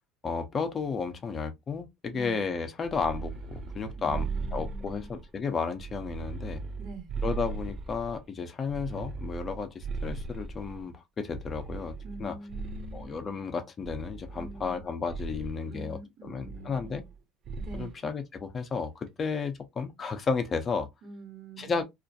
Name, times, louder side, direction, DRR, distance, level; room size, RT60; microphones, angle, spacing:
voice 1, 0.2-4.3 4.5-6.6 7.2-11.9 12.2-12.4 12.9-17.0 17.7-20.9 21.6-21.8, left 5 dB, 35° left, 0.6 m, -33 dB
sound 1, 2.8-5.3 5.7-8.2 8.7-10.8 11.3-13.2 13.8-14.8 15.1-15.6 16.4-17.2 17.5-17.9, right 4 dB, 45° right, 0.4 m, -38 dB
voice 2, 4.0-5.1 6.8-7.1 12.0-13.1 14.4-14.8 15.6-16.9 17.6-18.0 21.0-21.8, right 3 dB, 60° right, 1.1 m, -45 dB
2.4 x 2.1 x 2.6 m
hypercardioid pair, 80°, 0 cm